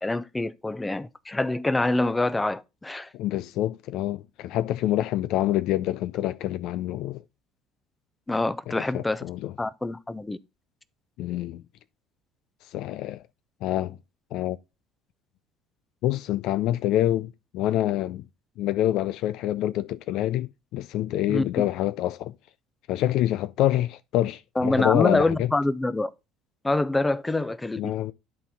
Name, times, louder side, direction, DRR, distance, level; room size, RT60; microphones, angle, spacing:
voice 1, 0.0-3.1 8.3-9.2 9.6-10.4 21.3-21.4 24.6-26.1 26.6-27.9, left 2 dB, 15° left, 0.6 m, -26 dB
voice 2, 3.1-7.2 8.7-9.5 11.2-11.6 12.7-13.2 13.6-14.0 14.3-14.6 16.0-18.2 18.6-22.3 22.9-25.5 27.8-28.1, left 13 dB, 60° left, 0.4 m, -26 dB
11.0 x 4.1 x 3.5 m
figure-of-eight pair, 60°, 0 cm